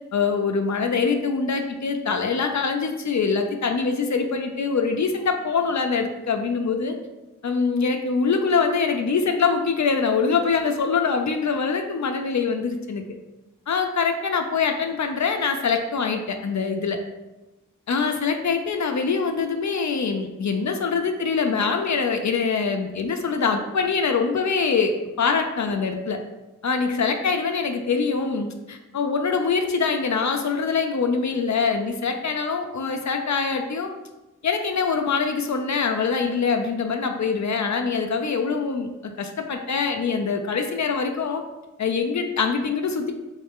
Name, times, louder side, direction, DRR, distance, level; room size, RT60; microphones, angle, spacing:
voice 1, 0.1-6.9 7.4-13.0 13.7-17.0 17.9-24.9 25.2-26.2 26.6-33.9 34.4-41.4 41.8-43.1, left 5 dB, 65° left, 5 dB, 0.5 m, -24 dB
3.2 x 3.1 x 3.5 m, 1.0 s
cardioid pair, 45°, 31 cm